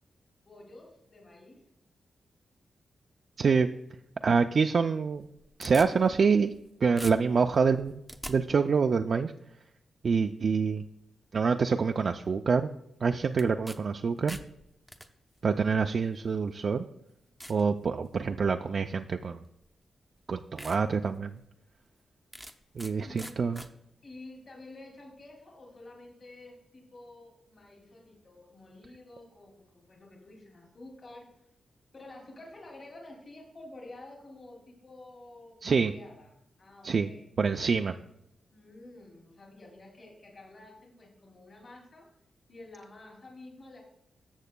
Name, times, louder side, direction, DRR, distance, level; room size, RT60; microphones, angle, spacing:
voice 1, 0.4-1.6 23.0-23.5 24.0-31.4 31.9-37.3 38.5-42.1 42.5-43.8, left 2 dB, 50° left, 0 dB, 2.4 m, -50 dB
voice 2, 3.4-3.7 4.2-5.2 5.6-6.5 6.8-8.0 8.3-9.3 10.0-10.8 11.3-12.7 13.0-14.4 15.4-16.8 17.5-19.4 20.3-21.4 22.8-23.6 35.6-35.9 36.8-37.1 37.4-38.0, right 5 dB, 55° right, 5 dB, 0.3 m, -26 dB
sound 1, 5.1-6.7 7.0-8.3 13.4-13.8 14.1-15.1 15.9-16.0 16.7-16.8 17.4-17.6 18.1-18.5 19.6-19.7 20.2-20.3 20.6-20.8 21.2-21.3 22.3-22.9 23.2-23.7, equal, ahead, 0.6 m, -43 dB
13.5 x 7.3 x 2.2 m, 0.80 s
cardioid pair, 90°, 0 cm